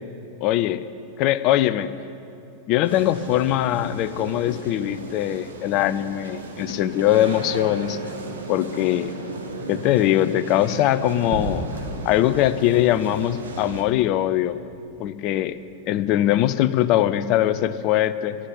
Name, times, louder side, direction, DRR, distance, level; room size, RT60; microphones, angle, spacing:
voice 1, 0.4-0.8 1.2-1.9 2.7-8.0 8.5-9.1 9.7-11.7 12.0-14.6 15.0-15.6 15.9-18.4, left 13 dB, 40° left, 14 dB, 0.5 m, -21 dB
sound 1, 2.8-13.8, right 3 dB, 70° right, 1.4 m, -35 dB
Gunshot gunfire / Fireworks / Boom, 11.3-16.1, right 1 dB, 35° right, 2.8 m, -36 dB
12.0 x 11.5 x 8.7 m, 2.6 s
figure-of-eight pair, 90°, 0 cm